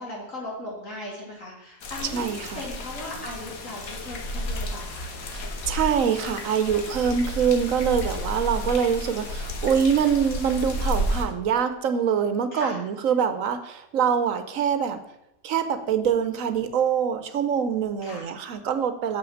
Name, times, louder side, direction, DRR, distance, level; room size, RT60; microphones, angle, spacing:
voice 1, 0.0-2.2 2.5-5.1 12.5-12.8 18.0-18.3, left 1 dB, 70° left, -3 dB, 3.2 m, -37 dB
sound 1, 1.8-11.2, equal, 85° left, 1.6 m, -32 dB
voice 2, 2.1-2.6 5.3-15.0 15.4-19.2, right 7 dB, 75° right, 9 dB, 1.2 m, -24 dB
7.1 x 5.9 x 6.4 m, 0.86 s
omnidirectional pair, 1.4 m